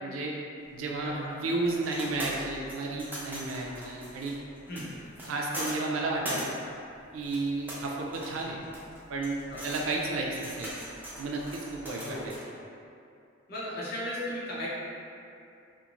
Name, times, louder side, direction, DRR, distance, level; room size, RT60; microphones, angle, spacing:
voice 1, 0.0-0.3 0.7-4.4 5.2-6.4 7.1-8.6 9.1-10.7 11.2-12.3, right 2 dB, 90° right, -1 dB, 0.4 m, -32 dB
sound 1, 0.7-12.4, equal, 10° right, 0.4 m, -41 dB
voice 2, 1.0-2.2 4.7-4.9 9.5-9.6 12.0-12.3 13.5-14.7, left 1 dB, 50° left, -8 dB, 0.6 m, -37 dB
2.4 x 2.1 x 2.9 m, 2.6 s
head